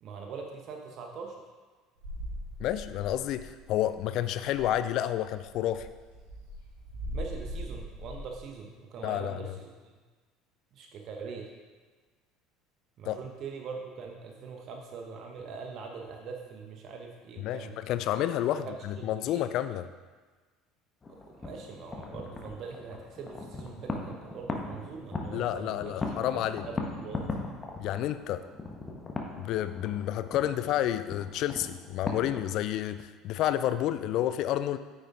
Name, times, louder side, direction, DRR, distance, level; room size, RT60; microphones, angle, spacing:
voice 1, 0.0-1.3 7.1-9.9 10.7-11.5 13.0-17.8 18.5-19.5 21.4-26.0 26.3-27.3, right 5 dB, 50° right, 2 dB, 1.1 m, -42 dB
sound 1, 2.0-3.7 3.9-4.0 4.3-4.8 5.3-8.3, equal, 80° right, 2.3 m, -40 dB
voice 2, 2.6-5.9 9.0-9.5 13.0-13.2 17.4-19.9 25.3-26.6 27.8-28.4 29.4-34.8, left 12 dB, 55° left, 12 dB, 0.4 m, -30 dB
sound 2, 21.0-32.6, left 3 dB, 25° left, 1.4 m, -39 dB
9.2 x 7.2 x 3.7 m, 1.4 s
figure-of-eight pair, 65°, 0 cm